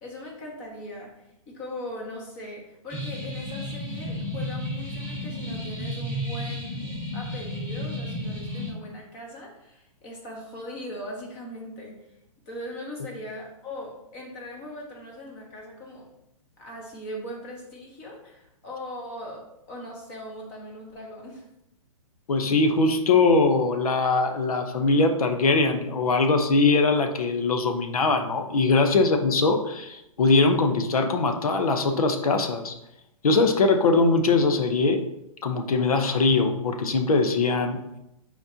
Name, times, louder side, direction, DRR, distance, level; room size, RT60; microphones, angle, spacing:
voice 1, 0.0-6.7 7.1-12.0 12.4-16.1 16.6-21.5 29.0-29.1, left 1 dB, 25° left, -1 dB, 1.4 m, -39 dB
sound 1, 2.9-8.7, left 1 dB, 5° left, 2.0 m, -32 dB
voice 2, 22.3-32.7 33.2-35.1 35.4-38.0, left 3 dB, 90° left, 6 dB, 1.0 m, -22 dB
8.1 x 4.3 x 2.8 m, 0.86 s
hypercardioid pair, 175°, 18 cm